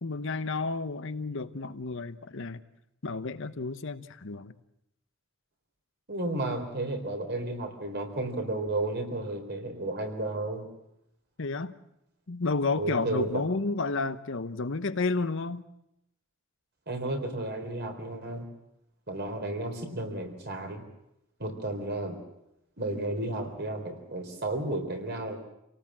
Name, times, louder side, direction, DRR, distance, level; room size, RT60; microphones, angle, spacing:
voice 1, 0.0-2.6 3.0-4.5 11.4-11.7 12.3-15.6, left 3 dB, 65° left, 11 dB, 1.0 m, -31 dB
voice 2, 6.1-10.7 12.7-13.3 16.9-18.5 19.1-20.8 21.4-22.2 22.8-25.4, right 2 dB, 50° right, 5 dB, 3.9 m, -33 dB
27.5 x 18.5 x 7.4 m, 0.82 s
head